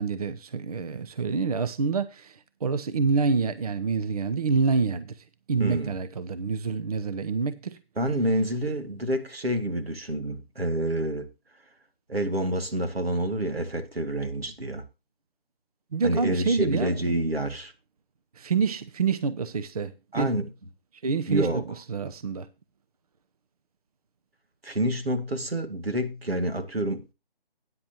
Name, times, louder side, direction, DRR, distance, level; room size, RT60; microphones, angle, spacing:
voice 1, 0.0-7.8 15.9-17.1 18.4-20.3 21.0-21.6 21.9-22.5, right 4 dB, 40° right, 0.7 m, -27 dB
voice 2, 5.6-5.9 8.0-11.3 12.1-14.9 16.0-17.7 20.1-20.5 21.3-21.6 24.6-27.1, right 1 dB, 85° right, 2.4 m, -28 dB
13.5 x 9.6 x 2.9 m
figure-of-eight pair, 155°, 29 cm